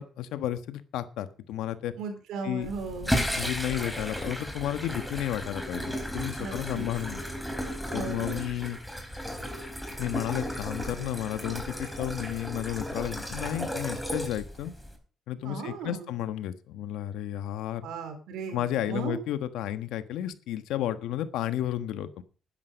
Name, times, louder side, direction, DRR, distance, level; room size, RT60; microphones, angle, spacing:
voice 1, 0.0-1.9 2.4-7.2 7.9-8.8 10.0-14.7 15.3-17.9 18.5-22.2, left 12 dB, 90° left, 11 dB, 1.3 m, -32 dB
voice 2, 2.0-3.1 6.4-6.8 7.9-8.5 15.4-16.1 17.8-19.2, right 5 dB, 85° right, 7 dB, 3.9 m, -36 dB
sound 1, 2.6-15.0, equal, ahead, 4.1 m, -34 dB
11.5 x 10.5 x 5.2 m, 0.37 s
cardioid pair, 90°, 0 cm